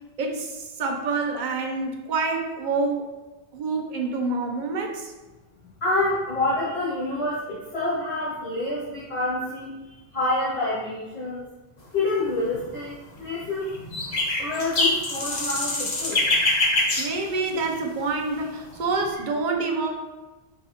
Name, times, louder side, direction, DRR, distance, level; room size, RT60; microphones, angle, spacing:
voice 1, 0.2-3.1 3.5-5.1 17.0-19.9, right 3 dB, 45° right, 2 dB, 0.9 m, -27 dB
voice 2, 5.8-9.7 10.1-11.4 11.9-13.7 14.4-16.2, left 2 dB, 65° left, -12 dB, 2.4 m, -27 dB
sound 1, 12.2-12.7 13.4-18.0 18.4-19.1, left 2 dB, 40° left, 1.0 m, -25 dB
6.4 x 5.4 x 3.0 m, 1.2 s
omnidirectional pair, 1.1 m